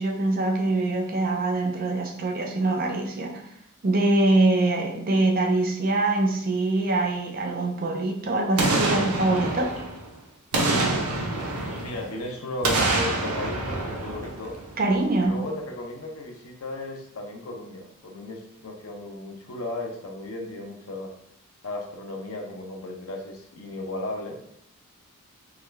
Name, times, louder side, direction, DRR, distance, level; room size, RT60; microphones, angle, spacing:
voice 1, 0.0-3.4 3.8-9.7 14.8-15.4, right 2 dB, 40° right, 2 dB, 0.5 m, -24 dB
Boom, 8.6-10.1 10.5-12.2 12.6-14.9 15.2-15.3, right 2 dB, 90° right, 0.8 m, -26 dB
voice 2, 11.6-14.5 15.2-21.1 21.6-24.4, left 2 dB, 70° left, 1 dB, 0.7 m, -35 dB
3.7 x 3.1 x 3.3 m, 0.74 s
head